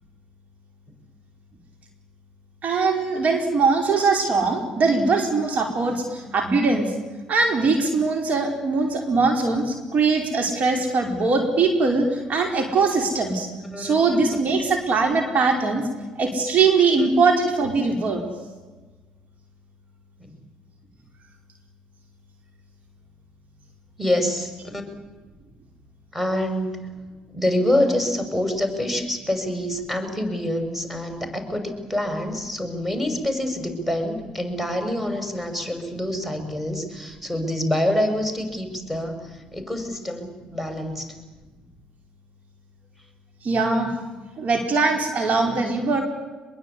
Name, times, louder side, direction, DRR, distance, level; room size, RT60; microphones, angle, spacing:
voice 1, 2.6-6.9 7.3-13.5 13.8-15.8 16.2-18.2 43.4-43.9 44.4-46.0, right 4 dB, 50° right, 3 dB, 4.9 m, -21 dB
voice 2, 24.0-24.8 26.1-27.0 27.3-41.1, left 1 dB, 5° right, 5 dB, 6.3 m, -26 dB
25.0 x 22.5 x 8.6 m, 1.2 s
hypercardioid pair, 55°, 3 cm